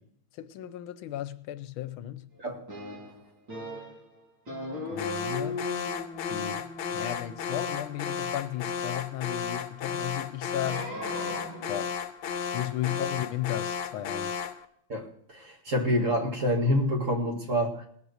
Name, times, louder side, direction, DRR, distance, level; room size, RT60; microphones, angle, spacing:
voice 1, 0.4-2.3 4.9-5.6 6.3-11.0 11.7-11.9 12.5-14.4, left 13 dB, 80° left, 1.5 m, -35 dB
voice 2, 2.4-2.8 14.9-17.9, equal, 40° right, 2.0 m, -28 dB
sound 1, 2.7-4.1 4.5-8.8 10.6-11.9, left 2 dB, 60° right, 6.5 m, -39 dB
Alarm, 5.0-14.7, left 6 dB, 60° left, 1.4 m, -34 dB
18.5 x 7.5 x 6.5 m
omnidirectional pair, 2.3 m